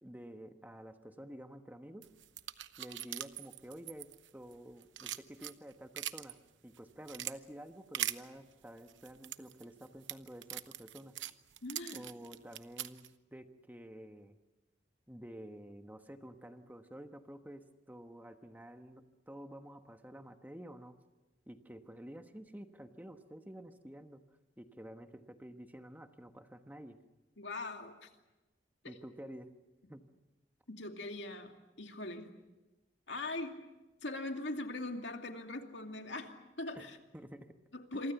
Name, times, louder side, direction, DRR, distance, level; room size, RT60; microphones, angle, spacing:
voice 1, 0.0-2.1 2.8-6.4 6.6-11.1 11.9-14.4 15.1-20.9 21.5-24.2 24.6-27.0 28.8-29.5 29.9-30.0 36.7-37.5 37.9-38.0, right 1 dB, 10° right, 7 dB, 1.2 m, -50 dB
sound 1, 2.0-4.5 4.8-6.3 6.8-7.3 7.9-8.2 8.9-13.1, right 12 dB, 80° right, 0.9 m, -41 dB
voice 2, 11.6-12.1 27.4-28.1 30.7-31.5 31.8-32.3 33.1-33.6 34.0-37.0 37.7-38.1, left 2 dB, 70° left, 4 dB, 2.6 m, -41 dB
27.5 x 24.0 x 7.1 m, 1.1 s
head